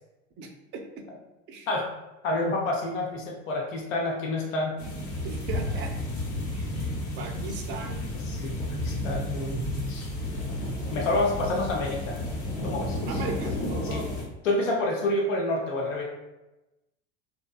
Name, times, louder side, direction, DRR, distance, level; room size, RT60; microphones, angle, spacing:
voice 1, 0.4-1.1 1.5-1.7 5.2-6.0 6.5-6.7 7.2-8.0 13.1-14.1, right 4 dB, 30° right, 4 dB, 0.4 m, -37 dB
voice 2, 2.2-4.8 8.3-9.6 9.9-10.1 10.7-12.2 12.6-13.0 13.9-14.0 14.4-16.0, left 2 dB, 90° left, -1 dB, 0.6 m, -28 dB
sound 1, 4.8-14.2, left 1 dB, 50° left, 0.9 m, -32 dB
2.7 x 2.1 x 2.3 m, 1.0 s
hypercardioid pair, 85°, 37 cm